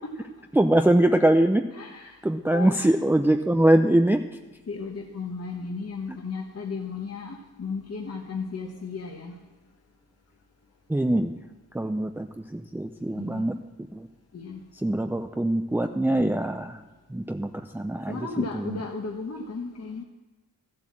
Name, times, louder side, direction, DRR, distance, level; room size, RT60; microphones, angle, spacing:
voice 1, 0.6-1.6 2.2-4.2 10.9-11.3 11.7-12.3 12.5-13.6 13.9-14.1 14.8-16.8 17.1-18.2, right 1 dB, 5° right, 5 dB, 0.6 m, -22 dB
voice 2, 1.7-2.2 2.5-2.9 4.7-9.4 13.1-13.5 14.3-14.6 18.1-20.0, left 4 dB, 40° left, 1 dB, 1.2 m, -35 dB
13.0 x 7.9 x 7.4 m, 1.1 s
cardioid pair, 65°, 38 cm